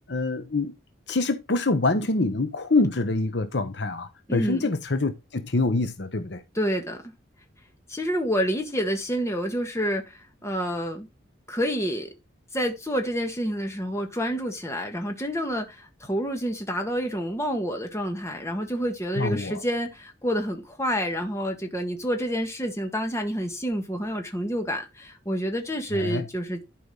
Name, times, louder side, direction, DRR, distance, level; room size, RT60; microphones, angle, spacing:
voice 1, 0.1-0.7 1.1-6.4 19.2-19.6 25.9-26.3, left 3 dB, 60° left, 1.0 m, -25 dB
voice 2, 4.3-4.7 6.5-7.1 7.9-11.1 11.5-12.1 12.5-26.6, equal, 15° left, 1.8 m, -28 dB
11.0 x 5.2 x 3.9 m
head